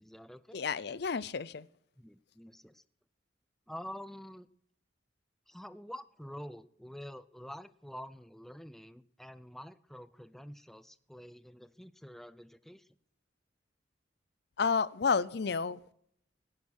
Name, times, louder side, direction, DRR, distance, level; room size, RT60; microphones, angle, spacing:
voice 1, 0.0-0.6 2.0-2.8 3.7-4.5 5.5-12.9, equal, ahead, 13 dB, 0.5 m, -47 dB
voice 2, 0.5-1.7 14.6-15.9, left 5 dB, 60° left, 19 dB, 0.5 m, -31 dB
17.5 x 10.5 x 6.3 m, 0.68 s
head